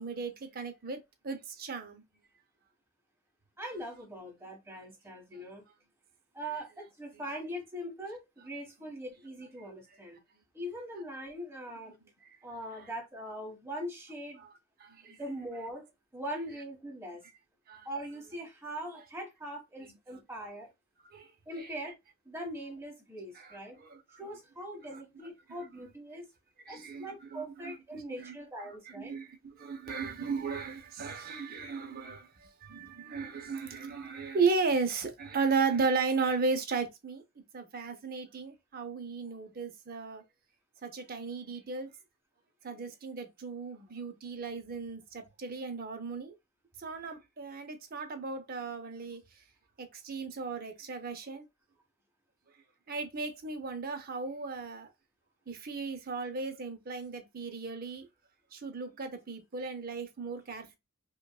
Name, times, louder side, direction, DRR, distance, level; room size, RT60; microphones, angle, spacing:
voice 1, 0.0-2.0 14.8-15.2 17.7-17.9 21.1-21.3 23.4-24.0 24.9-25.0 26.7-28.4 28.9-40.2 40.8-41.9 42.6-46.3 46.8-49.2 49.8-51.5 52.9-54.9 55.5-58.1 58.5-60.8, right 4 dB, 45° right, 0.7 m, -35 dB
voice 2, 3.6-5.6 6.3-10.2 10.5-11.9 12.4-14.4 15.0-15.8 16.1-17.2 17.8-20.7 21.4-21.9 22.2-23.8 24.2-26.3 26.7-29.1, right 1 dB, 15° right, 1.6 m, -41 dB
5.0 x 2.3 x 2.4 m
head